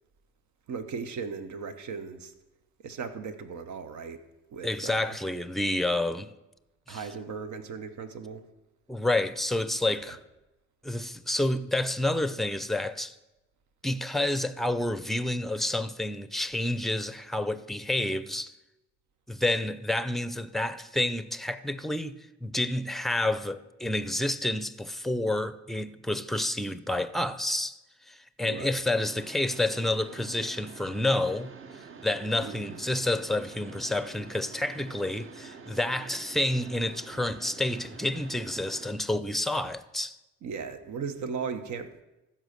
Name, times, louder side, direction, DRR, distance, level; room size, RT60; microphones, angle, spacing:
voice 1, 0.7-2.3 2.8-4.2 4.5-5.2 6.9-8.4 28.4-28.8 32.4-32.8 40.4-41.9, right 5 dB, 70° right, 1.1 m, -37 dB
voice 2, 4.6-6.3 6.9-7.1 8.9-10.2 10.8-13.2 13.8-18.5 19.3-27.8 28.1-31.5 32.0-40.2, left 1 dB, ahead, 0.5 m, -29 dB
Mechanisms, 29.0-38.9, right 5 dB, 45° right, 1.0 m, -47 dB
14.5 x 5.7 x 6.6 m
cardioid pair, 90°, 30 cm